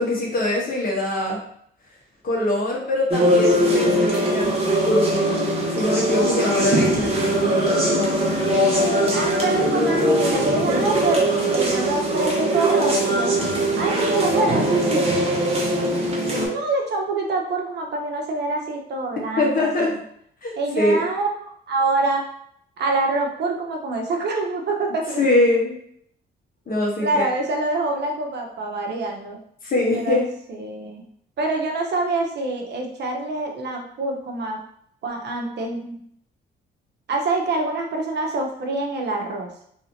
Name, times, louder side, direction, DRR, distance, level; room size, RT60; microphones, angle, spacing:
voice 1, 0.0-1.4 2.2-4.5 4.8-5.4 5.7-8.1 19.4-19.9 20.4-21.0 25.2-25.8 26.7-27.2 29.6-30.2, left 1 dB, 45° left, -2 dB, 1.2 m, -23 dB
sound 1, 3.1-16.5, right 1 dB, 30° right, 1.1 m, -21 dB
voice 2, 8.8-13.3 13.8-15.3 16.2-20.0 20.6-22.2 22.8-25.3 27.0-29.4 29.9-30.2 30.5-31.1 31.4-34.6 35.0-36.0 37.1-39.5, right 3 dB, 60° right, 2 dB, 0.7 m, -26 dB
3.2 x 2.7 x 2.8 m, 0.68 s
cardioid pair, 90°, 20 cm